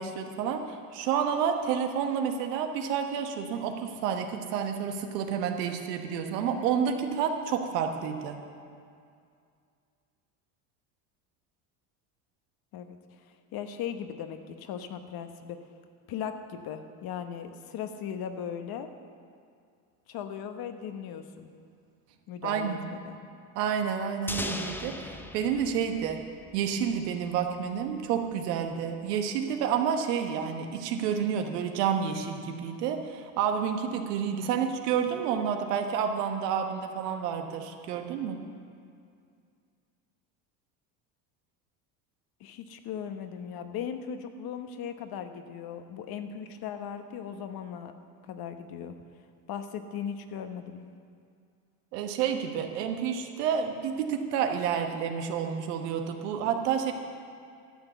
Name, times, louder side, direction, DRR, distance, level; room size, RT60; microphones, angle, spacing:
voice 1, 0.0-8.4 22.4-22.9 23.5-26.2 26.5-38.4 51.9-56.9, right 7 dB, 85° right, 5 dB, 1.3 m, -29 dB
voice 2, 13.5-15.6 16.1-18.9 20.1-21.5 22.3-23.2 42.4-47.9 48.2-49.0 49.5-50.8, left 8 dB, 50° left, 8 dB, 1.1 m, -38 dB
sound 1, 24.3-27.1, left 1 dB, 5° left, 0.6 m, -38 dB
12.5 x 7.1 x 6.8 m, 2.3 s
supercardioid pair, 95°, 46 cm